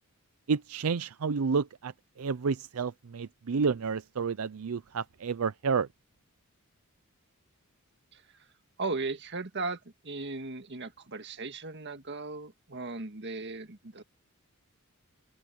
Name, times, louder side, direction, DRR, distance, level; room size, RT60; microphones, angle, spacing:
voice 1, 0.5-1.9 2.2-5.9, right 5 dB, 80° right, 0.5 m, -30 dB
voice 2, 8.8-14.0, right 3 dB, 55° right, 1.8 m, -37 dB
open air
head